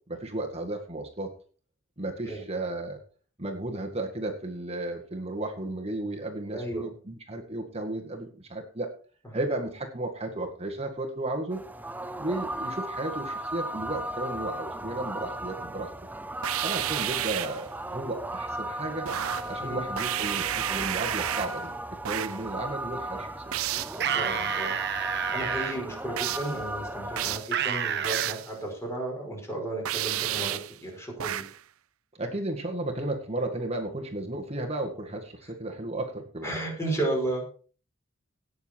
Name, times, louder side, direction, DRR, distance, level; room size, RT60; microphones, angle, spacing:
voice 1, 0.1-1.3 2.0-3.0 3.4-8.9 9.3-11.6 12.2-15.9 16.6-19.1 19.5-23.5 32.2-36.5, right 2 dB, 30° right, 2 dB, 1.9 m, -34 dB
voice 2, 6.5-6.9 19.6-19.8 24.1-24.8 25.3-31.4 36.4-37.6, right 1 dB, 15° left, 0 dB, 5.4 m, -33 dB
sound 1, 11.5-27.4, right 1 dB, 10° right, 0.5 m, -36 dB
sound 2, 16.4-17.6 19.1-19.6 20.0-21.6 22.0-22.4 23.5-24.0 26.2-26.6 27.2-27.5 28.0-28.5 29.9-30.8 31.2-31.6, right 12 dB, 85° right, 0.5 m, -31 dB
sound 3, 23.9-25.7 27.5-28.4, right 8 dB, 50° right, 1.1 m, -29 dB
18.0 x 7.0 x 4.6 m, 0.41 s
head